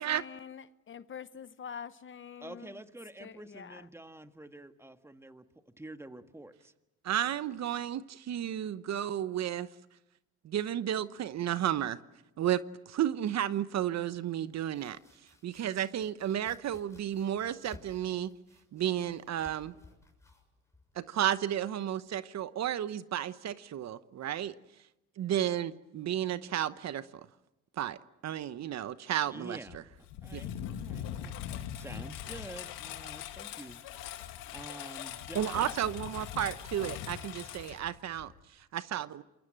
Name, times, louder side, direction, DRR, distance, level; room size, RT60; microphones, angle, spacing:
voice 1, 0.0-2.7 3.2-3.8, left 7 dB, 35° left, 0.9 m, -45 dB
voice 2, 2.4-5.4 5.8-6.7 29.3-29.8 30.2-31.3 31.7-35.7, right 1 dB, 10° right, 1.6 m, -48 dB
voice 3, 7.0-9.7 10.4-12.0 12.4-15.0 15.4-18.3 18.7-19.7 20.9-24.5 25.2-27.3 27.8-28.0 28.2-29.6 30.3-30.4 35.3-39.2, right 11 dB, 55° right, 1.0 m, -32 dB
Domestic sounds home sounds, 14.4-22.1, left 2 dB, 10° left, 6.9 m, -58 dB
Engine, 29.7-38.4, left 10 dB, 80° left, 2.2 m, -41 dB
27.5 x 22.0 x 7.7 m
supercardioid pair, 85°, 33 cm